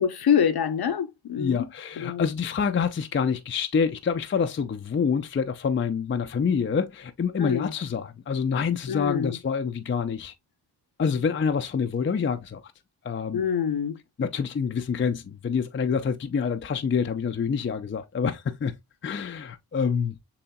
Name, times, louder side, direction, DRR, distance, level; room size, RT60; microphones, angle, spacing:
voice 1, 0.0-1.7 2.0-2.2 7.4-7.7 8.9-9.4 13.3-14.0, left 8 dB, 50° left, 0.8 m, -25 dB
voice 2, 1.4-10.3 11.0-12.6 13.0-13.5 14.2-18.7 19.0-20.2, left 6 dB, 25° left, 0.5 m, -27 dB
6.9 x 2.8 x 2.3 m
supercardioid pair, 40°, 48 cm